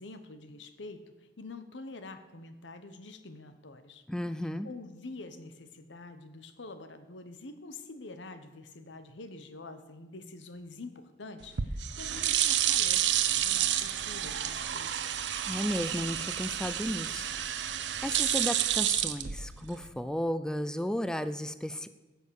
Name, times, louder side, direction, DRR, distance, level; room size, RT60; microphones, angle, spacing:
voice 1, 0.0-4.0 4.6-14.9, left 2 dB, 90° left, 10 dB, 1.1 m, -46 dB
voice 2, 4.1-4.7 15.5-17.3 18.0-21.9, equal, 5° left, 12 dB, 0.4 m, -34 dB
sound 1, 11.4-19.9, right 11 dB, 75° right, 0.7 m, -30 dB
15.0 x 6.4 x 6.4 m, 1.1 s
head